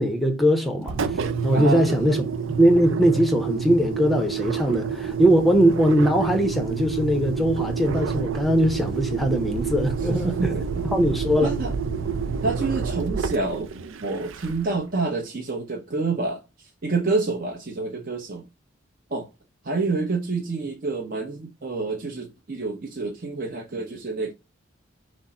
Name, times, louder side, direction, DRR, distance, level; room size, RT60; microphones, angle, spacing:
voice 1, 0.0-2.2 2.6-10.6 10.8-11.5, equal, ahead, 0.6 m, -21 dB
Engine, 0.8-14.8, right 6 dB, 75° right, 0.5 m, -28 dB
voice 2, 1.5-2.2 10.1-10.8 11.4-11.7 12.4-13.7 14.0-18.4 19.1-19.3 19.6-24.3, right 3 dB, 45° right, 0.8 m, -28 dB
6.1 x 2.1 x 4.1 m
head